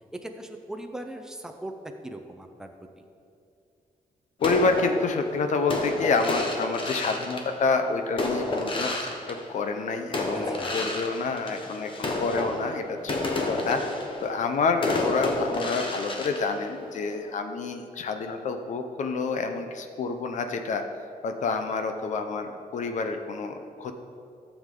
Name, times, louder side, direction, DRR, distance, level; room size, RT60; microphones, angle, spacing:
voice 1, 0.1-1.7 2.0-3.0 10.3-10.9, right 1 dB, 5° right, 4 dB, 0.6 m, -40 dB
voice 2, 4.4-13.8 14.2-20.8 21.2-23.9, left 4 dB, 55° left, 7 dB, 0.7 m, -28 dB
sound 1, 4.4-9.8 10.1-17.3, left 2 dB, 35° left, 1.1 m, -31 dB
14.0 x 7.2 x 3.7 m, 2.5 s
wide cardioid pair, 165°, 15 cm